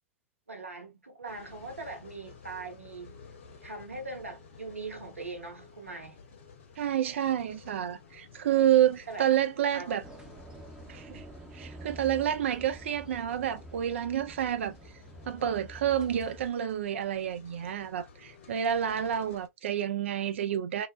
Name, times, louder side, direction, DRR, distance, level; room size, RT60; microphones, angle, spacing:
voice 1, 0.5-3.2 3.6-6.2 9.1-9.3 9.7-10.0, right 3 dB, 85° right, 0.9 m, -41 dB
sound 1, 1.3-19.5, left 5 dB, 65° left, 0.7 m, -53 dB
voice 2, 6.8-10.0 10.9-11.2 11.5-14.8 15.2-20.9, right 10 dB, 65° right, 0.3 m, -29 dB
sound 2, 10.0-16.5, right 1 dB, 10° right, 0.6 m, -48 dB
2.7 x 2.0 x 2.2 m
figure-of-eight pair, 90°, 7 cm